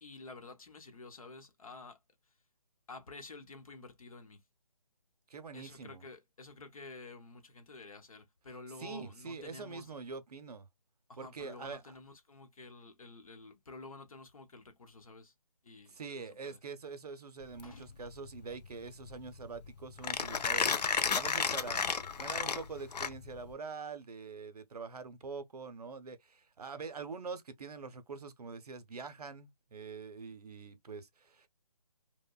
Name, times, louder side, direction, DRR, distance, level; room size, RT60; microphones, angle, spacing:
voice 1, 0.0-2.0 2.9-4.4 5.5-9.9 11.1-15.3 15.6-16.0 16.4-16.6 17.6-18.0, left 3 dB, 60° left, 0.8 m, -50 dB
voice 2, 5.3-6.0 8.8-10.7 11.2-12.0 15.9-21.8 22.2-31.5, right 4 dB, 70° right, 0.6 m, -44 dB
Mechanisms, 17.4-23.5, left 6 dB, 85° left, 0.5 m, -33 dB
2.9 x 2.1 x 2.2 m
hypercardioid pair, 175°, 20 cm